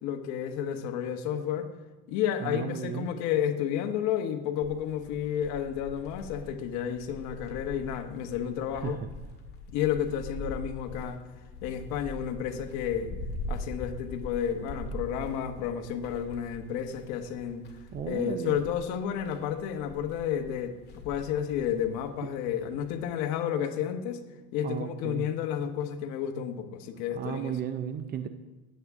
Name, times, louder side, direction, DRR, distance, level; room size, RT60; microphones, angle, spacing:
voice 1, 0.0-1.7 2.1-9.0 9.7-11.2 11.6-13.1 13.5-17.6 18.1-20.8 21.0-24.2 24.5-27.5, left 9 dB, 55° left, 6 dB, 1.3 m, -31 dB
voice 2, 2.4-3.1 8.8-9.1 17.9-18.6 22.2-22.3 24.6-25.3 27.1-28.3, right 9 dB, 30° right, 10 dB, 0.5 m, -34 dB
sound 1, 4.6-23.2, left 1 dB, 30° left, 2.1 m, -43 dB
17.0 x 8.4 x 3.6 m, 1.2 s
cardioid pair, 150°, 34 cm